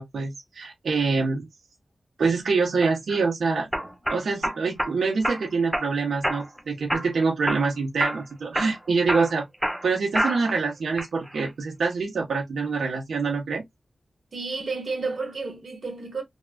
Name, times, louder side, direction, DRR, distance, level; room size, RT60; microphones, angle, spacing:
voice 1, 0.0-1.4 2.2-3.7 4.1-9.4 9.8-13.6, right 4 dB, 90° right, 1.0 m, -25 dB
sound 1, 2.8-3.2 3.7-4.9 5.2-5.9 6.2-6.6 6.9-7.7 8.0-8.2 8.5-10.6 11.0-11.5, equal, 5° right, 0.8 m, -28 dB
voice 2, 14.3-16.2, right 4 dB, 60° right, 1.2 m, -31 dB
3.5 x 2.3 x 2.3 m
wide cardioid pair, 105°, 0 cm